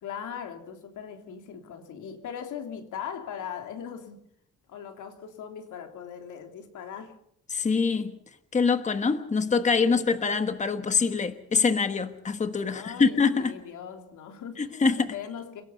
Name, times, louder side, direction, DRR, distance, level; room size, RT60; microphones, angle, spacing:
voice 1, 0.0-4.2 4.7-7.2 9.8-10.1 12.7-15.6, left 8 dB, 85° left, 3.2 m, -40 dB
voice 2, 7.5-8.2 8.5-13.5 14.6-15.1, left 5 dB, 25° left, 1.2 m, -24 dB
29.0 x 17.5 x 5.7 m
cardioid pair, 130°, 30 cm